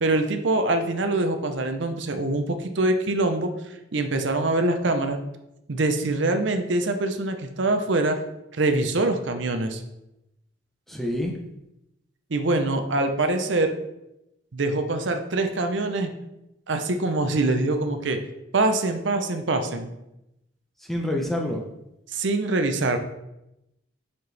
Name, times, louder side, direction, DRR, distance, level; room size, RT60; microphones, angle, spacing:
voice 1, 0.0-3.5 3.9-5.2 5.7-8.2 8.6-9.8 12.3-13.7 14.5-16.1 16.7-18.2 18.5-19.9 22.1-23.0, right 2 dB, 70° right, 7 dB, 0.7 m, -24 dB
voice 2, 10.9-11.3 20.8-21.6, left 1 dB, ahead, 0 dB, 0.7 m, -27 dB
6.6 x 4.3 x 3.4 m, 0.88 s
head